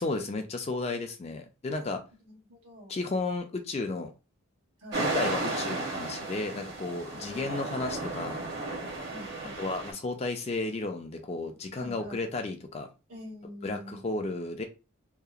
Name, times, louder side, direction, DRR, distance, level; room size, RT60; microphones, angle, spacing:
voice 1, 0.0-2.0 2.9-4.1 5.0-8.4 9.6-12.9 13.6-14.6, left 3 dB, 30° left, 0.3 m, -33 dB
voice 2, 2.2-3.0 4.8-5.1 7.1-7.6 9.1-9.7 11.7-12.3 13.1-14.2, left 1 dB, 80° right, 1.2 m, -46 dB
sound 1, 4.9-9.9, right 2 dB, 50° right, 0.8 m, -34 dB
2.7 x 2.0 x 2.4 m
head